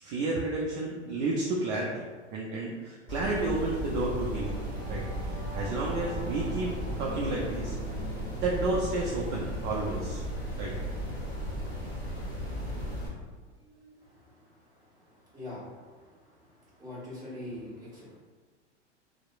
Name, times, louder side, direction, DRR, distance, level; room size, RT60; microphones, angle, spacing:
voice 1, 0.0-2.0 2.3-4.6 4.9-5.0 5.3-6.7 7.0-7.7 8.4-10.2 10.6-10.7, right 2 dB, 45° right, -3 dB, 0.5 m, -31 dB
Singing / Musical instrument, 3.0-12.7, right 1 dB, 85° right, 0.7 m, -45 dB
sound 1, 3.1-13.1, equal, 10° left, 1.2 m, -35 dB
voice 2, 16.7-18.2, left 1 dB, 10° right, -10 dB, 1.3 m, -41 dB
2.9 x 2.0 x 2.3 m, 1.4 s
hypercardioid pair, 95°, 36 cm